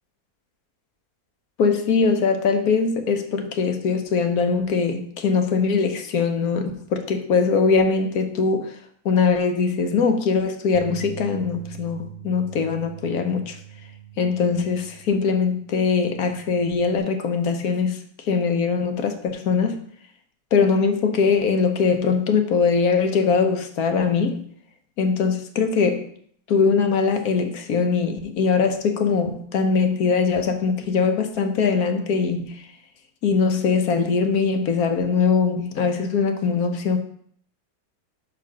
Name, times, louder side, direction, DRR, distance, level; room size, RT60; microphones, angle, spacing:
voice 1, 1.6-8.8 9.0-13.6 14.2-19.8 20.5-24.4 25.0-26.1 26.5-32.7 33.2-37.0, left 5 dB, 80° left, 1.3 m, -21 dB
Bass guitar, 10.7-17.0, right 9 dB, 35° right, 0.8 m, -42 dB
5.3 x 4.7 x 6.2 m
omnidirectional pair, 1.6 m